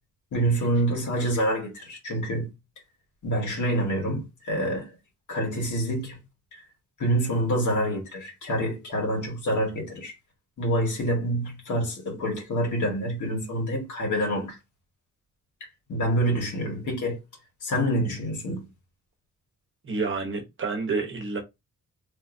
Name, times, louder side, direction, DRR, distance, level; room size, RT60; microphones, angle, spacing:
voice 1, 0.3-2.5 3.2-4.9 5.3-6.2 6.5-6.6 7.0-10.1 10.6-14.6 15.9-17.2 17.6-18.7, right 1 dB, 80° left, 1.8 m, -27 dB
voice 2, 19.8-21.4, right 4 dB, 40° right, 1.0 m, -29 dB
3.2 x 3.1 x 2.6 m
wide cardioid pair, 135°, 29 cm